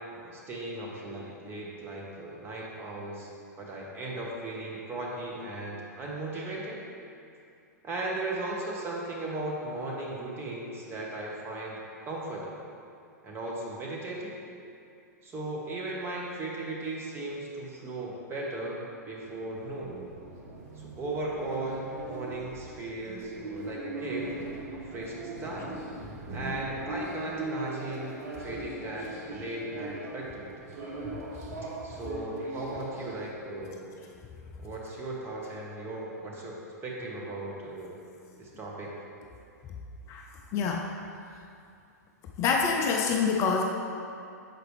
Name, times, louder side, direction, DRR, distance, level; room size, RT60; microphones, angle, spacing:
voice 1, 0.1-6.8 7.8-12.6 13.2-14.4 15.2-20.0 20.7-24.3 24.7-25.7 26.3-28.1 28.4-30.6 31.8-33.9 34.6-38.0 38.4-39.0, right 2 dB, 25° right, -3 dB, 1.2 m, -37 dB
sound 1, 19.2-33.3, right 2 dB, 60° right, 1.0 m, -40 dB
voice 2, 40.5-40.9 42.4-43.6, left 5 dB, 30° left, 1 dB, 0.4 m, -26 dB
6.6 x 4.7 x 3.2 m, 2.5 s
hypercardioid pair, 110°, 9 cm